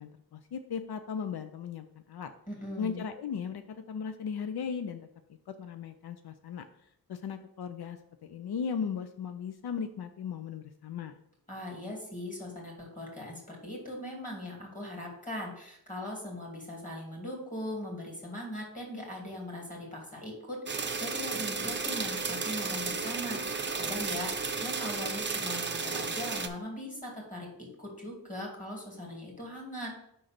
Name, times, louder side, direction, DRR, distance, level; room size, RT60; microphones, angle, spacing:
voice 1, 0.0-2.3 2.8-5.1 5.5-6.6 7.1-11.1, left 6 dB, 85° left, 9 dB, 0.5 m, -37 dB
voice 2, 2.5-3.0 11.5-29.9, left 1 dB, 20° left, -1 dB, 2.4 m, -40 dB
sound 1, 20.7-26.5, right 4 dB, 30° right, 0.5 m, -33 dB
5.2 x 3.9 x 5.8 m, 0.73 s
wide cardioid pair, 105°, 37 cm